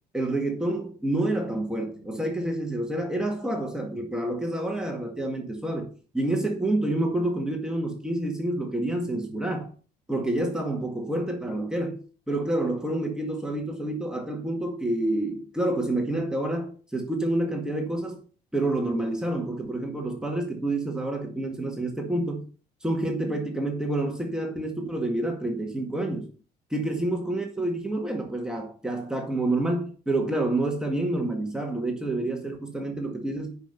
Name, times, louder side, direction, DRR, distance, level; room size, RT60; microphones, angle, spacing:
voice 1, 0.1-5.9 6.1-9.7 10.1-12.0 12.3-18.2 18.5-22.4 22.8-26.3 26.7-33.6, right 1 dB, 5° right, 1.9 m, -28 dB
9.0 x 5.4 x 5.5 m
cardioid pair, 110°, 17 cm